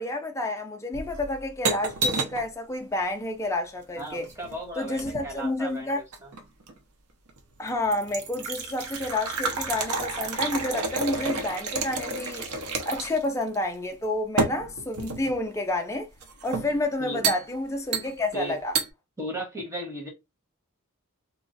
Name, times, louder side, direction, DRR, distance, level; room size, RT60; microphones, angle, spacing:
voice 1, 0.0-4.3 4.8-6.0 7.6-12.5 12.9-16.1 16.4-18.7, left 2 dB, 15° left, 0.4 m, -29 dB
sound 1, 0.9-2.5 3.9-5.3 6.1-6.8 7.3-7.4 7.7-13.3 13.5-13.6 14.4-15.4 16.2-16.8 17.2-17.5 17.9-18.4 18.7-18.9, right 3 dB, 80° right, 0.8 m, -30 dB
voice 2, 4.0-6.3 17.0-17.3 18.3-18.6 19.2-20.1, right 1 dB, 15° right, 1.4 m, -36 dB
3.0 x 2.4 x 4.0 m
head